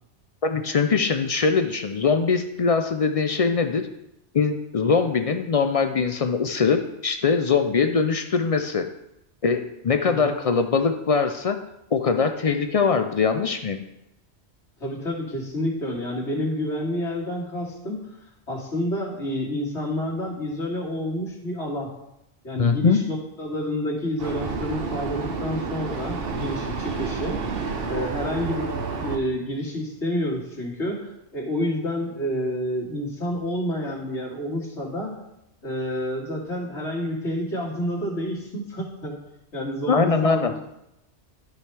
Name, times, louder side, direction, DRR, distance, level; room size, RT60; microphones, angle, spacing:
voice 1, 0.4-3.9 4.3-8.8 9.4-11.6 11.9-13.8 22.6-23.0 39.9-40.5, left 5 dB, 50° left, 7 dB, 0.4 m, -22 dB
voice 2, 14.8-18.1 18.5-21.9 22.4-27.4 27.9-35.2 35.6-39.2 39.5-40.6, equal, 90° left, -5 dB, 2.5 m, -29 dB
Vehicle, 24.2-29.2, right 4 dB, 60° right, 1.0 m, -30 dB
13.0 x 4.9 x 3.3 m, 0.85 s
omnidirectional pair, 1.1 m